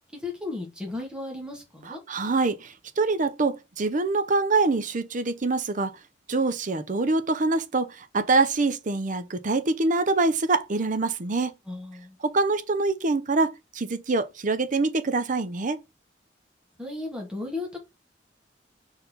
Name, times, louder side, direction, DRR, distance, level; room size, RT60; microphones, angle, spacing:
voice 1, 0.1-2.0 11.7-12.2 16.8-17.8, left 2 dB, 5° right, 2.4 m, -35 dB
voice 2, 1.8-5.9 6.3-11.5 12.2-15.8, right 3 dB, 45° right, 0.7 m, -25 dB
5.3 x 4.4 x 4.0 m
head